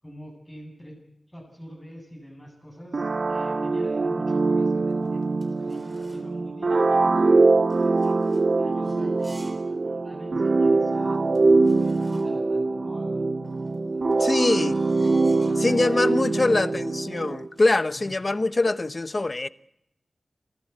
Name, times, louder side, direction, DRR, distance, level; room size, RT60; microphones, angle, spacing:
voice 1, 0.0-1.0 1.3-11.2 11.8-13.3 13.7-14.7 15.4-16.8 17.9-18.1, equal, 10° left, 7.9 m, -45 dB
sound 1, 2.9-17.5, right 3 dB, 55° right, 0.8 m, -23 dB
sound 2, 4.7-6.3 7.6-9.7 10.1-10.2 10.8-10.9 11.1-12.5 13.4-15.7 16.3-16.6 16.9-18.2, right 1 dB, 10° right, 4.0 m, -51 dB
voice 2, 14.2-14.8 15.6-19.5, left 2 dB, 40° left, 0.8 m, -23 dB
29.5 x 12.5 x 8.4 m
wide cardioid pair, 75°, 0 cm